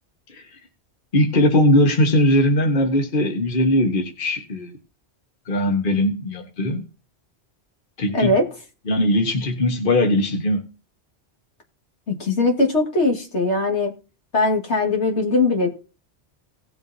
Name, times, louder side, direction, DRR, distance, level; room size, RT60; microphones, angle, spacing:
voice 1, 1.1-4.7 5.5-6.8 8.0-8.3 8.9-10.6, left 1 dB, 50° left, 3 dB, 1.5 m, -19 dB
voice 2, 8.1-8.5 12.1-13.9 14.3-15.7, left 2 dB, 80° left, 1 dB, 2.3 m, -20 dB
18.5 x 6.9 x 2.8 m, 0.34 s
omnidirectional pair, 1.2 m